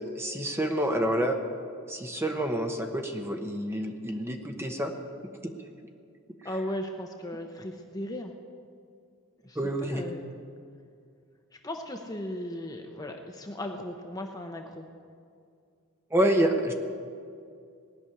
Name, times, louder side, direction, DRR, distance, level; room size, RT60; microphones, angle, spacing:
voice 1, 0.0-1.4 1.9-4.9 5.4-5.5 9.6-10.1 16.1-16.7, right 1 dB, 10° right, 4 dB, 0.9 m, -28 dB
voice 2, 6.4-8.3 9.4-10.2 11.6-14.9, left 1 dB, 15° left, 3 dB, 0.7 m, -37 dB
18.5 x 6.2 x 9.9 m, 2.4 s
head